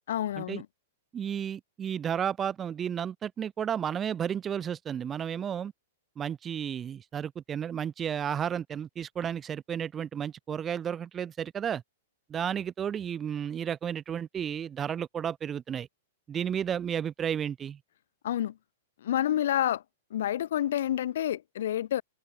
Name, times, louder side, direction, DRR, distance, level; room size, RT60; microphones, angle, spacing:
voice 1, 0.1-0.7 18.2-18.5 19.0-19.8 20.1-22.0, left 11 dB, 70° left, 1.2 m, -28 dB
voice 2, 1.1-5.7 6.2-11.8 12.3-15.9 16.3-17.8, right 8 dB, 20° right, 3.3 m, -32 dB
hypercardioid pair, 150°, 0 cm